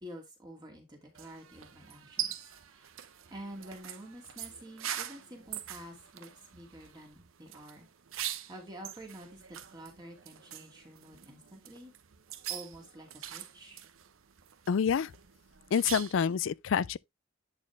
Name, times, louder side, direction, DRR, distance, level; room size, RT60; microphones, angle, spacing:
voice 1, 0.0-2.9 3.3-7.9 8.5-11.9 12.5-13.8, right 1 dB, 20° right, 2.3 m, -49 dB
sound 1, 1.1-16.4, right 11 dB, 75° right, 0.8 m, -43 dB
voice 2, 14.7-15.1 15.7-17.0, left 7 dB, 65° left, 0.4 m, -27 dB
11.0 x 4.4 x 3.2 m
head